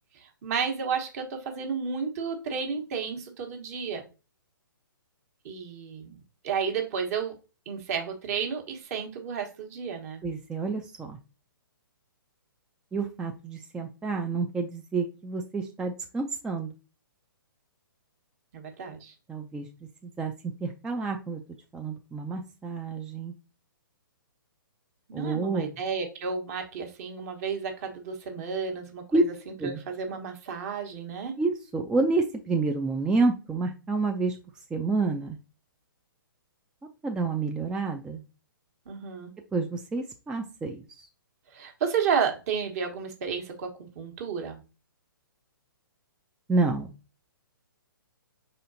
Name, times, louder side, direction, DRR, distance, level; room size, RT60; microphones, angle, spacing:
voice 1, 0.1-4.1 5.4-6.1 6.4-7.3 7.7-10.2 18.5-19.1 25.1-31.3 38.9-39.3 41.5-44.6, right 6 dB, 45° right, 4 dB, 1.1 m, -32 dB
voice 2, 10.2-11.2 12.9-16.7 19.3-19.7 20.0-20.3 20.6-21.4 21.7-23.3 25.1-25.8 29.1-29.2 29.6-29.8 31.4-34.4 34.7-35.4 37.0-38.2 39.5-41.1 46.5-46.9, right 3 dB, 5° right, 3 dB, 0.3 m, -29 dB
4.8 x 4.2 x 2.6 m, 0.32 s
hypercardioid pair, 130°, 12 cm